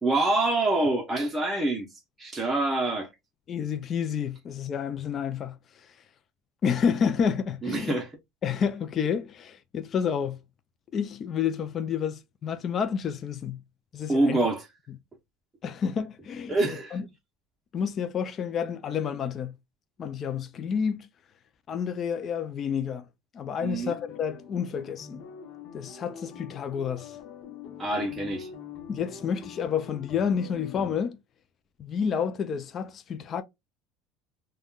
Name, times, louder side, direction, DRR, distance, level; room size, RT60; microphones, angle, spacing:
voice 1, 0.0-1.9 2.2-3.1 7.6-8.1 14.1-14.7 16.5-17.0 23.6-23.9 27.8-28.5, right 2 dB, 15° right, 0.7 m, -26 dB
voice 2, 3.5-5.6 6.6-7.9 8.4-10.4 10.9-13.6 13.9-14.4 15.6-16.5 16.9-17.0 17.7-19.5 20.0-21.1 21.7-23.0 23.3-25.2 25.7-27.2 28.9-31.2 31.8-33.4, left 7 dB, 35° left, 0.4 m, -29 dB
sound 1, 23.7-31.0, left 6 dB, 60° left, 0.8 m, -44 dB
3.5 x 2.2 x 2.3 m
supercardioid pair, 130°, 0 cm